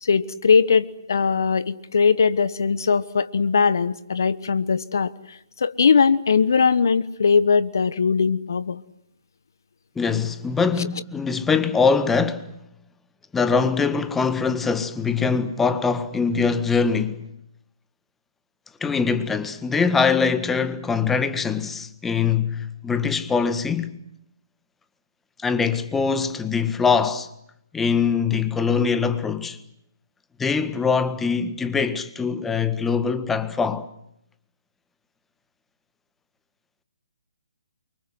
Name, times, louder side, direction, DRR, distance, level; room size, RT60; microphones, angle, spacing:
voice 1, 0.0-8.8, left 5 dB, 65° left, 1.3 m, -20 dB
voice 2, 9.9-12.5 13.3-17.2 18.8-24.0 25.4-27.3 27.7-29.6 30.4-33.9, left 5 dB, 10° left, 1.6 m, -23 dB
29.0 x 24.5 x 7.9 m
figure-of-eight pair, 135°, 2 cm